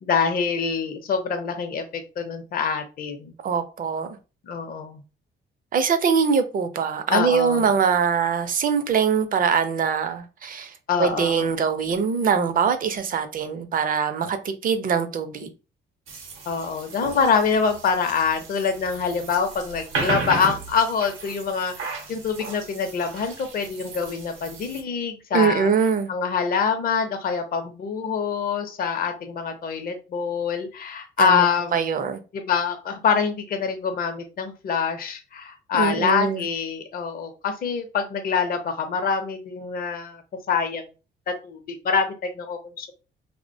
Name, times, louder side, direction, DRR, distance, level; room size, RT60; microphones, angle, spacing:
voice 1, 0.0-3.3 4.5-5.0 7.1-7.7 10.9-11.5 16.5-25.7 26.1-31.8 32.3-40.2 40.5-40.8 41.3-42.9, left 6 dB, 50° left, 0.5 m, -25 dB
voice 2, 3.4-4.1 5.7-15.5 25.3-26.1 31.2-31.4 31.7-32.2 35.8-36.4, right 6 dB, 45° right, 0.5 m, -23 dB
sound 1, 16.1-24.8, right 4 dB, 85° right, 0.7 m, -34 dB
2.3 x 2.1 x 2.6 m
cardioid pair, 90°, 20 cm